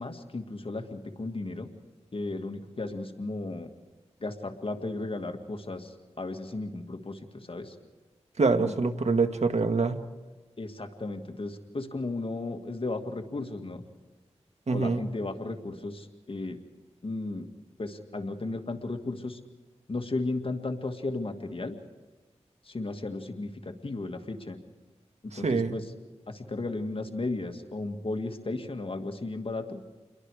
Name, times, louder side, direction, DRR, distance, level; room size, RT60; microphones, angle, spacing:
voice 1, 0.0-1.7 2.1-3.7 4.2-7.8 8.7-8.8 10.6-13.8 14.7-16.6 17.0-17.5 17.8-19.4 19.9-21.8 22.7-24.6 25.2-25.9 26.3-29.9, left 2 dB, 50° left, 5 dB, 2.1 m, -35 dB
voice 2, 8.4-10.0 14.7-15.0 25.3-25.7, right 4 dB, 70° right, 7 dB, 1.7 m, -25 dB
29.5 x 22.5 x 5.0 m, 1.2 s
wide cardioid pair, 55°, 12 cm